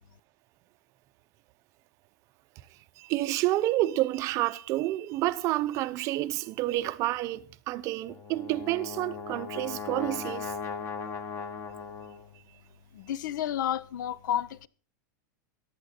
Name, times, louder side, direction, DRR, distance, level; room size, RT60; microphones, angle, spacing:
voice 1, 3.0-10.5, right 16 dB, 30° right, 0.6 m, -29 dB
Brass instrument, 8.1-12.4, left 5 dB, 25° left, 1.2 m, -38 dB
voice 2, 12.9-14.7, left 10 dB, 70° left, 0.7 m, -31 dB
15.0 x 11.5 x 4.3 m
supercardioid pair, 170°, 11 cm